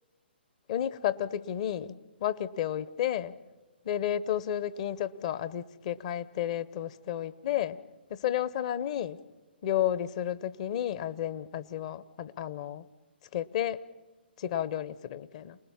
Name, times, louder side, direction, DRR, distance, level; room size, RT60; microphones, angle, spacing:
voice 1, 0.7-3.3 3.8-7.8 8.1-9.2 9.6-12.9 13.3-13.8 14.4-15.6, left 11 dB, 40° left, 17 dB, 0.8 m, -32 dB
28.5 x 19.5 x 7.2 m, 1.2 s
figure-of-eight pair, 130°, 6 cm